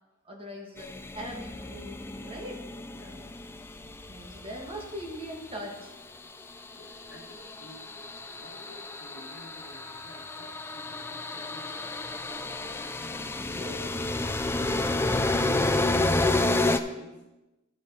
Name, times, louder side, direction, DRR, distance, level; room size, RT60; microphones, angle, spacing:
voice 1, 0.2-2.6 4.1-5.9 6.5-6.6 13.4-13.8, equal, 25° right, 0 dB, 1.3 m, -41 dB
sound 1, 0.8-5.1 6.6-16.8, left 2 dB, 10° left, 0.3 m, -30 dB
voice 2, 2.9-3.4 6.5-12.0 12.2-12.8 13.5-17.2, left 1 dB, 55° left, 0 dB, 1.7 m, -52 dB
12.0 x 5.2 x 4.1 m, 1.0 s
head